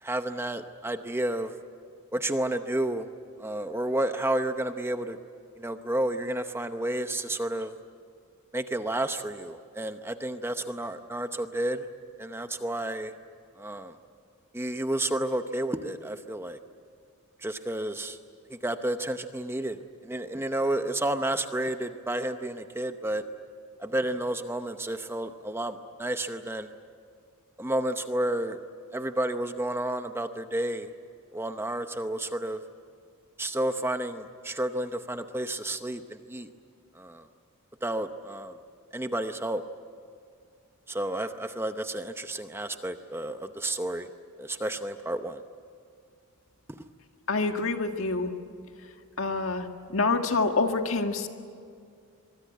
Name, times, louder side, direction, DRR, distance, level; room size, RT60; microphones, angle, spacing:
voice 1, 0.0-1.5 2.1-3.1 3.4-5.2 5.6-7.7 8.5-11.9 12.2-13.1 13.6-13.9 14.5-16.6 17.4-18.2 18.5-23.2 23.8-26.7 27.6-28.6 28.9-30.9 31.3-32.6 33.4-36.5 36.9-37.2 37.8-38.6 38.9-39.6 40.9-44.1 44.4-45.4 46.7-46.9, right 1 dB, 10° right, 8 dB, 0.8 m, -31 dB
voice 2, 47.3-48.3 49.2-49.7 49.9-51.3, left 3 dB, 65° left, 5 dB, 1.9 m, -26 dB
24.0 x 22.5 x 9.3 m, 2.3 s
head